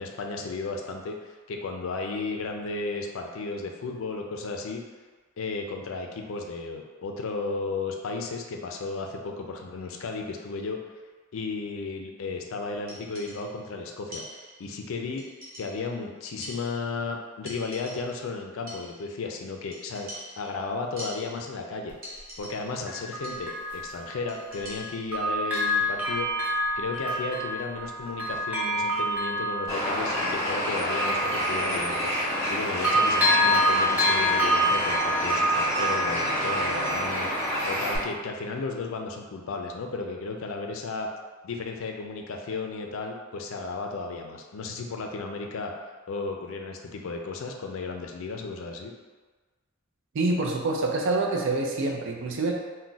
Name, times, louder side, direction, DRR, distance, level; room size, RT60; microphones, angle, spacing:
voice 1, 0.0-4.8 5.4-10.8 11.3-14.2 14.6-15.2 15.6-20.1 20.4-21.9 22.4-26.3 26.8-32.1 32.5-37.3 37.6-41.1 41.4-45.7 46.1-48.9, left 3 dB, 70° left, 2 dB, 0.4 m, -34 dB
sound 1, 12.9-13.7 14.1-14.8 15.2-16.0 16.4-17.2 17.5-18.3 18.7-19.2 19.7-21.7 22.0-22.9 23.2-23.7 24.3-26.0, equal, 45° right, 0.9 m, -45 dB
Bell, 21.9-22.0 22.9-24.8 25.1-32.5 32.8-37.5 37.9-38.0, equal, 10° right, 0.6 m, -27 dB
Bird, 29.7-38.0, equal, 15° left, 0.9 m, -28 dB
voice 2, 50.1-52.5, right 2 dB, 65° right, 1 dB, 0.5 m, -26 dB
2.3 x 2.1 x 3.8 m, 1.4 s
head